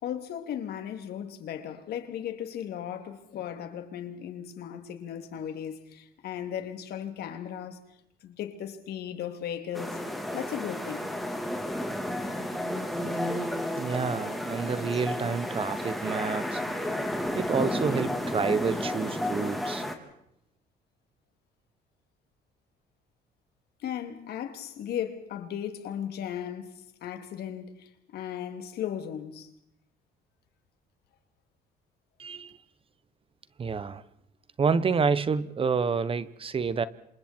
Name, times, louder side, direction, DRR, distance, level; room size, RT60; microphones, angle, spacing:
voice 1, 0.0-7.8 8.2-10.0 10.3-11.1 23.8-29.5, left 9 dB, 70° left, 3.0 m, -36 dB
sound 1, 9.7-20.0, left 1 dB, ahead, 3.5 m, -32 dB
voice 2, 13.8-16.6 17.3-19.9 32.2-32.6 33.6-34.0 34.6-36.8, right 5 dB, 30° right, 1.1 m, -28 dB
28.5 x 27.5 x 4.5 m
cardioid pair, 110°, 17 cm